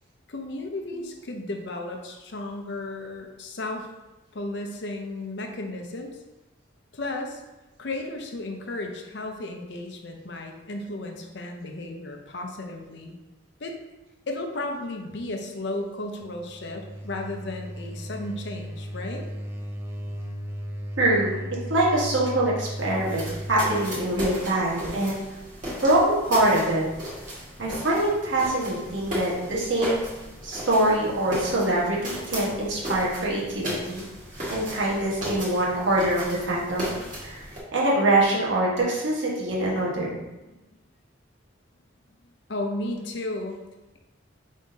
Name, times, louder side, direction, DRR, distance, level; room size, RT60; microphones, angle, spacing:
voice 1, 0.3-3.9 4.3-6.2 6.9-7.4 7.8-13.2 13.6-13.8 14.3-19.2 40.5-40.6 42.5-43.6, left 2 dB, 55° left, 3 dB, 0.6 m, -34 dB
sound 1, 16.2-24.0, equal, 10° right, 0.3 m, -36 dB
voice 2, 21.0-21.4 21.7-25.2 25.8-26.8 27.6-30.1 30.4-34.0 34.5-36.9 37.2-37.4 37.7-40.2, right 1 dB, 65° right, -5 dB, 1.3 m, -24 dB
sound 2, 22.7-37.6, equal, 40° right, 1.6 m, -36 dB
5.5 x 3.6 x 2.7 m, 1.0 s
head